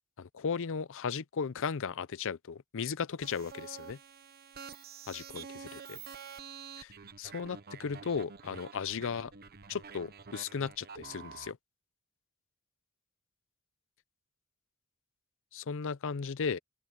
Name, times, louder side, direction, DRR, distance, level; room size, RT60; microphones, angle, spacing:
voice 1, 0.2-4.0 5.1-6.0 6.8-6.9 7.2-9.3 9.7-11.6 15.5-16.6, left 6 dB, 65° left, 0.5 m, -36 dB
sound 1, 3.2-11.5, right 6 dB, 45° right, 1.0 m, -48 dB
open air
head